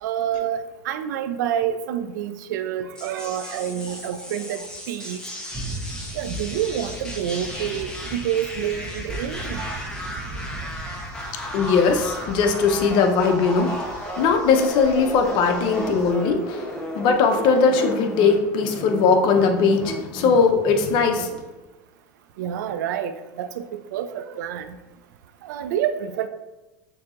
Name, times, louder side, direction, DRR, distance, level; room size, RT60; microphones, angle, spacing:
voice 1, 0.0-5.2 6.1-9.8 22.4-24.8 25.4-26.3, right 9 dB, 85° right, 10 dB, 0.4 m, -28 dB
sound 1, 2.9-21.4, equal, 10° left, 0.9 m, -34 dB
sound 2, 5.5-16.1, right 1 dB, 35° right, 1.0 m, -38 dB
voice 2, 11.5-13.7 14.2-16.6 16.9-21.3, left 5 dB, 60° left, 4 dB, 0.7 m, -19 dB
6.4 x 2.8 x 2.5 m, 1.1 s
supercardioid pair, 110°, 10 cm